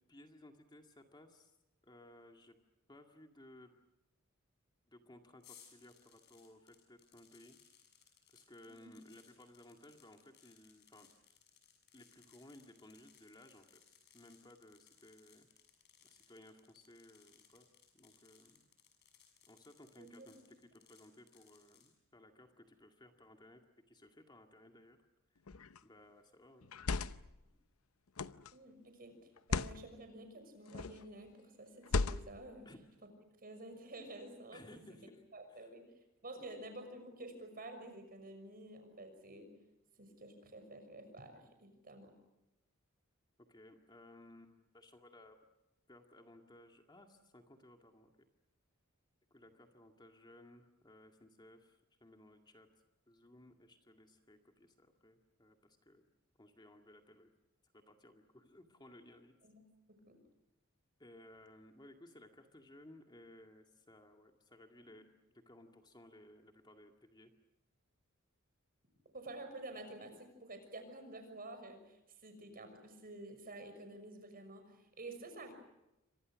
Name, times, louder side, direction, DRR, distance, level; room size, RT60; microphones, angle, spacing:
voice 1, 0.1-1.5 1.8-2.6 2.9-3.7 4.9-7.6 8.3-11.1 11.9-15.5 16.0-17.7 17.9-18.6 19.5-20.6 20.9-23.6 23.9-25.0 25.3-25.4 25.8-26.7 32.7-32.8 34.5-35.2 35.5-35.7 36.3-36.4 43.5-45.4 45.9-48.1 49.3-56.0 56.4-57.3 57.7-59.3 61.0-65.1 65.3-67.3, left 1 dB, 20° left, 4 dB, 2.0 m, -59 dB
sound 1, 5.4-21.9, left 8 dB, 55° left, 6.8 m, -66 dB
voice 2, 20.0-20.3 28.5-32.7 33.4-34.9 35.3-39.6 40.0-42.1 59.4-59.6 59.9-60.2 64.9-65.0 69.1-75.5, right 2 dB, 45° right, 7 dB, 6.1 m, -50 dB
sound 2, 25.5-25.8 26.6-27.3 28.2-28.5 29.4-29.8 30.7-31.0 31.8-32.5, left 3 dB, 90° left, 0.8 m, -36 dB
28.5 x 25.5 x 6.4 m, 0.93 s
head